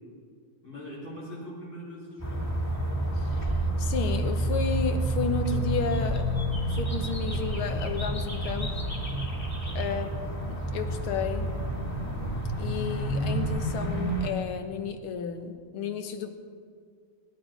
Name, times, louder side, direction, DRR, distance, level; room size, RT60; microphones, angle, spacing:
voice 1, 0.6-2.5, equal, 60° left, -6 dB, 6.3 m, -41 dB
sound 1, 2.2-14.3, right 1 dB, 5° left, 2.4 m, -29 dB
voice 2, 3.8-6.3 6.7-8.7 9.8-10.1 10.4-11.5 12.6-16.3, left 6 dB, 80° left, 7 dB, 2.0 m, -32 dB
23.5 x 11.0 x 5.2 m, 2.1 s
omnidirectional pair, 2.3 m